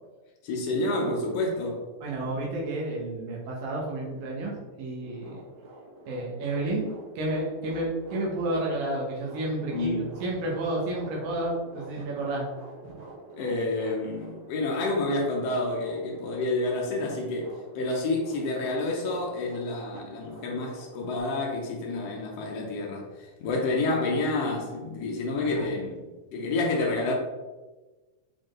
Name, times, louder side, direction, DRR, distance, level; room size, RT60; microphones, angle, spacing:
voice 1, 0.4-1.8 9.7-10.1 13.4-27.1, left 2 dB, 85° left, -1 dB, 1.4 m, -29 dB
voice 2, 2.0-4.5 4.8-5.4 6.1-6.9 7.2-12.5 25.4-25.7, right 2 dB, 85° right, -3 dB, 2.9 m, -31 dB
sound 1, 5.0-21.2, right 2 dB, 60° right, 2.5 m, -47 dB
7.0 x 4.4 x 3.1 m, 1.2 s
omnidirectional pair, 3.9 m